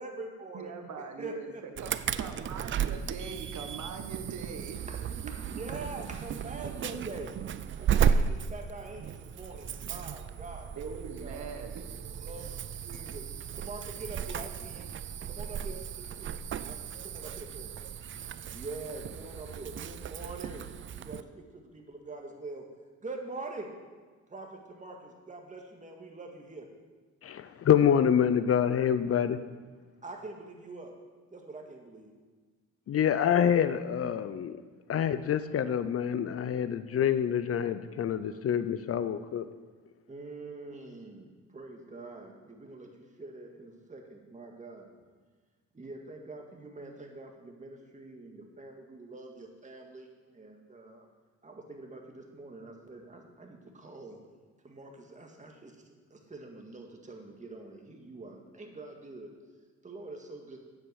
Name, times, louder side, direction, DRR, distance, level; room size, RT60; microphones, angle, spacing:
voice 1, 0.0-0.7 1.2-1.9 5.5-7.3 7.8-11.5 12.2-12.5 12.8-13.3 13.6-14.9 15.2-16.3 16.6-17.7 18.5-20.7 21.0-22.6 23.0-23.7 24.3-26.7 30.0-30.9 31.3-32.1 40.1-44.9 45.7-51.1 51.4-54.2 54.6-55.7 56.1-59.3 59.8-60.6, right 2 dB, 25° right, 2 dB, 1.9 m, -44 dB
voice 2, 0.5-4.8 5.2-5.3 5.8-5.9 10.8-11.8, right 6 dB, 70° right, 6 dB, 1.3 m, -42 dB
Insect / Alarm, 1.8-21.2, right 7 dB, 40° right, 0.5 m, -34 dB
voice 3, 27.2-29.4 32.9-34.6 34.9-39.5, left 8 dB, 50° left, 12 dB, 0.6 m, -26 dB
8.8 x 7.9 x 6.4 m, 1.4 s
cardioid pair, 90°, 30 cm